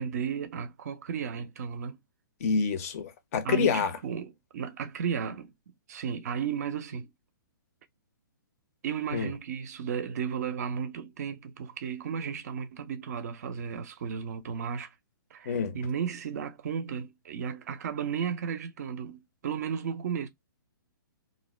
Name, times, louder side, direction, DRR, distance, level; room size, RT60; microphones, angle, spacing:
voice 1, 0.0-2.0 3.4-7.1 8.8-14.9 15.3-20.3, right 7 dB, 50° right, 0.4 m, -34 dB
voice 2, 2.4-3.9 9.1-9.3 15.5-15.8, left 6 dB, 40° left, 0.5 m, -27 dB
2.5 x 2.1 x 3.0 m
figure-of-eight pair, 125°, 11 cm